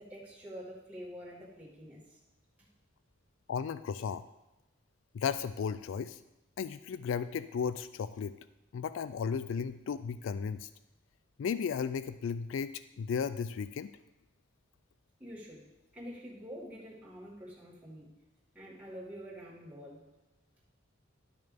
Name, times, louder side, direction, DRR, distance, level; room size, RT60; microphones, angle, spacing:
voice 1, 0.0-2.2 2.6-2.7 15.2-15.7 15.9-18.1 18.5-20.0, equal, 10° right, -8 dB, 2.3 m, -47 dB
voice 2, 3.5-4.2 5.1-6.2 6.6-8.4 8.7-10.7 11.4-13.9, left 6 dB, 75° left, 14 dB, 0.3 m, -35 dB
12.0 x 6.4 x 3.5 m, 0.98 s
head